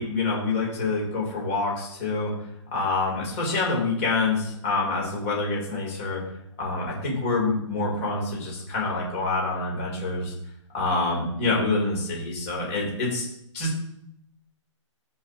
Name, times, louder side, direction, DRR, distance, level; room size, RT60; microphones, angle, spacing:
voice 1, 0.0-2.3 2.7-6.2 6.6-10.3 10.7-13.2 13.5-13.8, left 3 dB, 25° left, -3 dB, 3.4 m, -26 dB
12.5 x 5.5 x 3.0 m, 0.76 s
hypercardioid pair, 170°, 16 cm